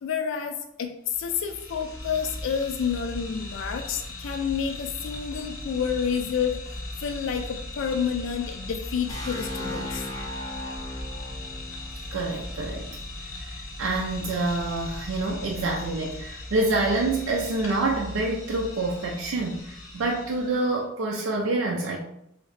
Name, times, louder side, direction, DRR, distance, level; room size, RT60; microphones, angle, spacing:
voice 1, 0.0-6.7 7.0-10.1, left 7 dB, 70° left, 5 dB, 0.3 m, -29 dB
sound 1, 1.1-20.8, left 2 dB, 90° left, 0.7 m, -38 dB
sound 2, 9.1-12.9, left 1 dB, 20° left, 0.6 m, -37 dB
voice 2, 12.1-12.9 13.5-22.0, right 2 dB, 85° right, -1 dB, 0.4 m, -27 dB
3.1 x 2.8 x 3.1 m, 0.76 s
head